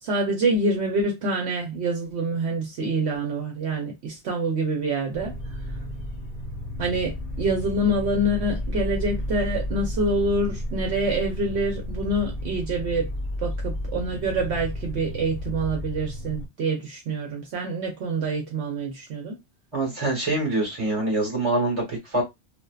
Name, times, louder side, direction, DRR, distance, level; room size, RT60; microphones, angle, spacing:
voice 1, 0.0-5.3 6.8-13.1 13.4-19.4, right 2 dB, 70° right, 0.9 m, -26 dB
sound 1, 5.1-16.5, left 1 dB, 40° left, 0.8 m, -32 dB
voice 2, 19.7-22.2, right 2 dB, 30° right, 1.3 m, -25 dB
2.6 x 2.2 x 2.3 m
omnidirectional pair, 1.2 m